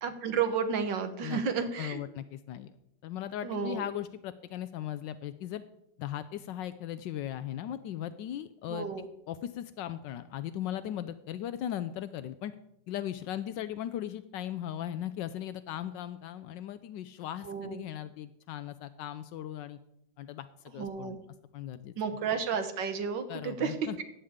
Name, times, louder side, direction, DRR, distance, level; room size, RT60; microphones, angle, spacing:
voice 1, 0.0-2.0 3.4-3.9 8.7-9.1 17.4-17.8 20.8-21.2 22.0-23.9, right 6 dB, 80° right, 8 dB, 1.9 m, -32 dB
voice 2, 1.2-2.7 3.0-5.6 6.0-12.5 12.9-19.8 20.2-21.2 21.5-21.9 23.3-24.1, left 11 dB, 80° left, 12 dB, 1.3 m, -38 dB
14.0 x 10.0 x 3.7 m, 0.77 s
omnidirectional pair, 2.0 m